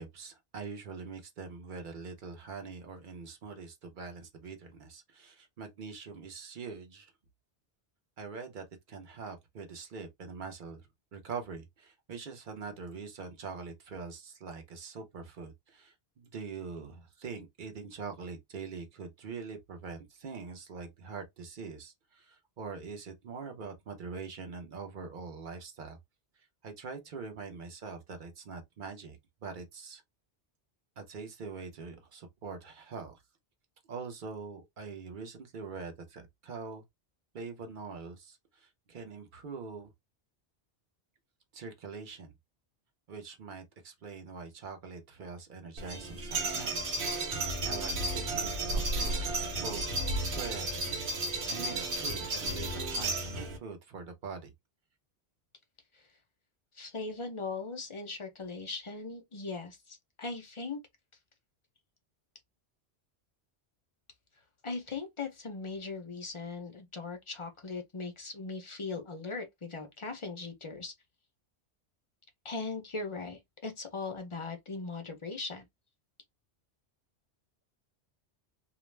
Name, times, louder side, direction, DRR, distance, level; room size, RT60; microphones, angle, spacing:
voice 1, 0.0-7.1 8.2-10.8 11.1-26.0 26.6-30.0 31.0-33.2 33.9-36.8 37.3-39.9 41.5-42.3 43.1-50.7 51.5-54.5, right 5 dB, 50° right, 0.8 m, -43 dB
sound 1, 45.8-53.6, right 2 dB, 75° right, 1.0 m, -33 dB
voice 2, 56.7-60.8 64.6-70.9 72.4-75.7, left 3 dB, 40° left, 0.5 m, -39 dB
2.4 x 2.0 x 3.1 m
omnidirectional pair, 1.1 m